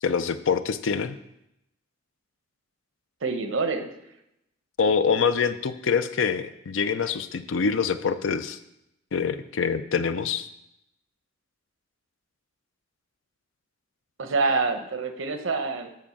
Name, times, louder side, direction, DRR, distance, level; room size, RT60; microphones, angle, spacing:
voice 1, 0.0-1.2 4.8-8.6 9.1-10.5, left 6 dB, 75° left, 12 dB, 0.5 m, -25 dB
voice 2, 3.2-3.9 14.2-16.0, right 4 dB, 80° right, 7 dB, 0.9 m, -26 dB
7.6 x 4.7 x 7.1 m, 0.84 s
head